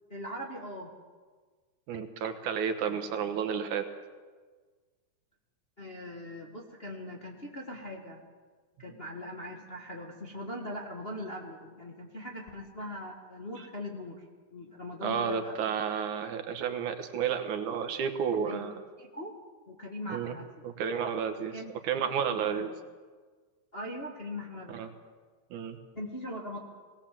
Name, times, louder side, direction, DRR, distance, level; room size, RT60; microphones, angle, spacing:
voice 1, 0.1-0.9 2.8-3.0 5.8-8.2 8.8-14.2 14.5-15.6 18.4-18.7 19.0-19.3 19.7-20.7 21.5-22.0 22.3-22.7 23.7-24.9 25.9-26.6, left 1 dB, 25° left, -1 dB, 1.3 m, -41 dB
voice 2, 1.9-3.9 8.9-9.0 15.0-18.8 20.1-20.4 20.6-21.6 21.8-22.7 24.7-24.9 25.5-25.8, right 7 dB, 75° right, 7 dB, 2.7 m, -31 dB
20.0 x 18.0 x 7.5 m, 1.5 s
omnidirectional pair, 3.6 m